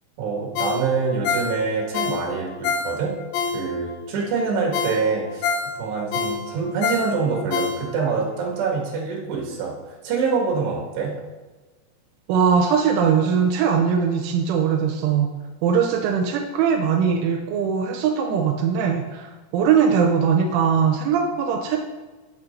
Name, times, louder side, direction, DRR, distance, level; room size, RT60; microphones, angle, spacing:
voice 1, 0.2-3.2 3.5-11.2, right 4 dB, 70° right, -3 dB, 3.8 m, -25 dB
Ringtone, 0.6-4.0 4.4-4.5 4.7-8.2 8.6-8.7, left 5 dB, 75° left, 2.9 m, -27 dB
voice 2, 12.3-15.3 15.6-19.3 19.5-21.8, right 7 dB, 90° right, 2 dB, 3.2 m, -20 dB
15.5 x 6.3 x 2.6 m, 1.3 s
omnidirectional pair, 5.5 m